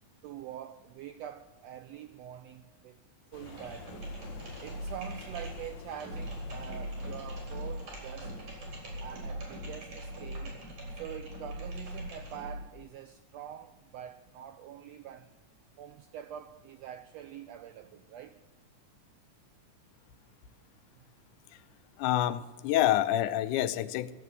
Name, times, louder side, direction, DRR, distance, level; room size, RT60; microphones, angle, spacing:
voice 1, 0.2-3.0 3.3-4.1 4.6-8.3 9.0-10.6 10.9-15.3 15.8-18.4, right 10 dB, 90° right, 1.5 m, -45 dB
sound 1, 3.3-9.3, left 7 dB, 65° left, 1.7 m, -52 dB
sound 2, 3.4-12.7, equal, 65° right, 5.5 m, -41 dB
voice 2, 22.0-24.1, left 13 dB, 85° left, 2.2 m, -27 dB
14.5 x 7.6 x 9.7 m
omnidirectional pair, 3.5 m